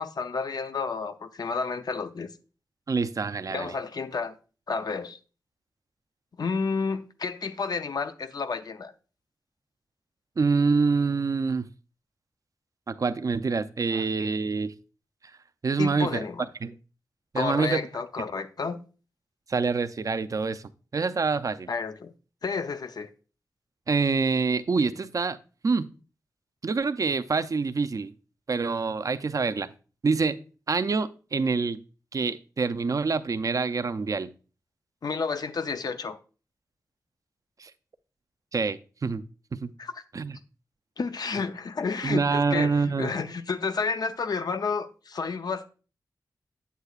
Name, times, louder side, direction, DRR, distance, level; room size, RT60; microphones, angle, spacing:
voice 1, 0.0-2.3 3.5-4.3 4.7-5.2 6.4-8.9 13.9-14.0 15.8-16.5 17.4-18.8 21.7-22.1 22.4-23.1 35.0-36.2 39.8-40.0 41.0-45.7, left 4 dB, 65° left, 0.6 m, -31 dB
voice 2, 2.9-3.7 10.4-11.7 12.9-14.7 15.6-16.2 16.6-16.7 17.3-17.8 18.2-18.3 19.5-20.6 20.9-21.7 23.9-25.4 25.6-25.9 26.6-28.1 28.5-29.7 30.0-30.4 30.7-31.8 32.1-34.3 37.6-37.7 38.5-39.2 39.6-39.7 40.1-40.4 42.0-43.1, right 4 dB, 50° right, 0.5 m, -26 dB
8.1 x 8.0 x 2.4 m
cardioid pair, 65°, 7 cm